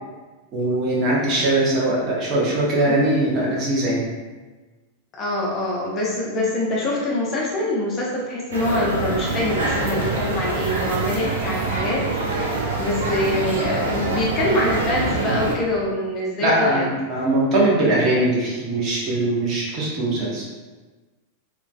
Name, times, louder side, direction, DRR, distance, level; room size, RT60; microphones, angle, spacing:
voice 1, 0.5-4.0 16.4-20.6, right 1 dB, 35° right, -5 dB, 0.7 m, -21 dB
voice 2, 5.2-16.9, left 1 dB, 30° left, -4 dB, 0.5 m, -24 dB
sound 1, 8.5-15.5, right 3 dB, 65° right, 0.4 m, -25 dB
2.4 x 2.3 x 2.2 m, 1.3 s
figure-of-eight pair, 90°, 0 cm